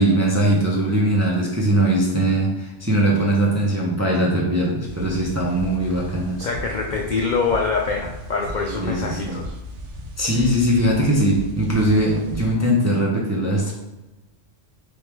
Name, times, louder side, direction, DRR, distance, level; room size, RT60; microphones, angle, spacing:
voice 1, 0.0-6.4 8.6-9.4 10.2-13.7, right 1 dB, 20° right, -3 dB, 0.5 m, -20 dB
sound 1, 4.8-12.5, left 1 dB, 70° right, 1.0 m, -36 dB
voice 2, 6.4-9.6, left 4 dB, 60° left, 1 dB, 0.5 m, -24 dB
3.5 x 3.1 x 4.5 m, 1.0 s
omnidirectional pair, 1.3 m